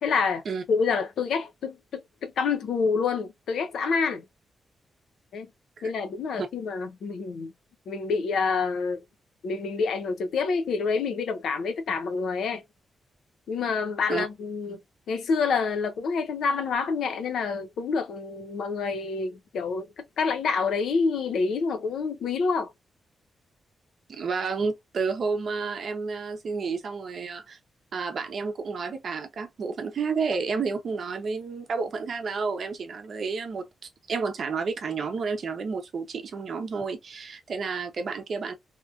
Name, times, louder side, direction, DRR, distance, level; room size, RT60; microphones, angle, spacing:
voice 1, 0.0-0.4 0.7-4.2 5.3-5.5 5.8-7.5 7.9-9.0 9.4-12.6 13.5-14.8 15.1-22.7, left 5 dB, 75° left, 0.6 m, -27 dB
voice 2, 24.1-27.6 27.9-33.7 34.1-38.5, right 4 dB, 50° right, 0.7 m, -30 dB
2.9 x 2.5 x 2.3 m
wide cardioid pair, 165°, 0 cm